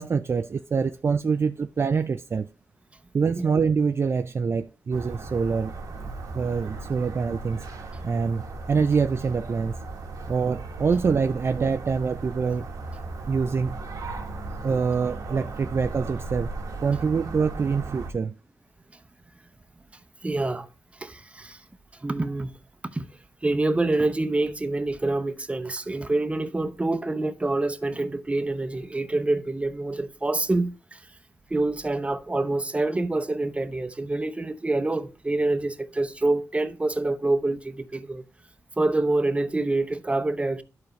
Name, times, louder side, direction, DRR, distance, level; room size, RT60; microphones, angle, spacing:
voice 1, 0.0-2.5 3.1-5.7 6.3-7.7 8.0-8.4 8.7-9.8 10.3-12.7 13.3-13.8 14.6-16.5 16.8-18.4, right 5 dB, 40° right, 0.4 m, -25 dB
sound 1, 4.9-18.1, right 3 dB, 70° right, 1.1 m, -36 dB
voice 2, 20.2-20.7 20.9-21.6 22.0-22.5 22.9-23.1 23.4-31.0 31.5-38.2 38.8-40.6, right 2 dB, 20° right, 0.8 m, -26 dB
11.5 x 4.5 x 3.1 m
cardioid pair, 65°, 6 cm